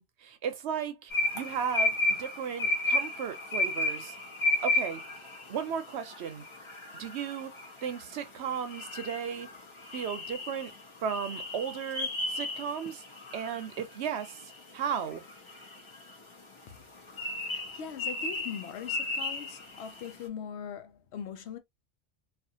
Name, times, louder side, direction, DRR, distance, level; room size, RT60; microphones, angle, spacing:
voice 1, 0.0-4.2 4.6-5.0 5.5-6.5 7.0-7.6 7.8-9.5 9.9-10.7 11.0-13.0 13.3-15.2, right 7 dB, 70° right, 0.9 m, -35 dB
sound 1, 1.1-20.1, left 2 dB, 30° left, 0.7 m, -34 dB
voice 2, 17.4-21.6, left 8 dB, 70° left, 0.8 m, -41 dB
2.5 x 2.4 x 2.7 m
omnidirectional pair, 1.2 m